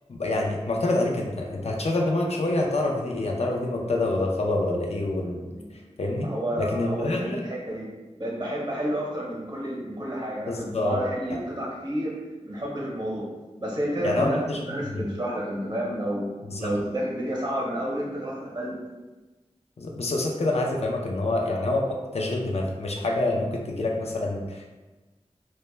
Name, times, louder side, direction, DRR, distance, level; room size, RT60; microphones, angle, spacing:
voice 1, 0.1-5.4 6.0-6.3 6.6-7.4 10.5-11.0 11.3-11.4 14.0-15.0 16.5-16.7 19.8-24.7, left 2 dB, 65° left, 0 dB, 0.4 m, -27 dB
voice 2, 6.2-7.9 8.2-12.2 12.4-13.3 13.6-16.3 16.6-18.8, equal, 40° right, -4 dB, 0.7 m, -30 dB
2.1 x 2.0 x 3.0 m, 1.2 s
wide cardioid pair, 65°, 11 cm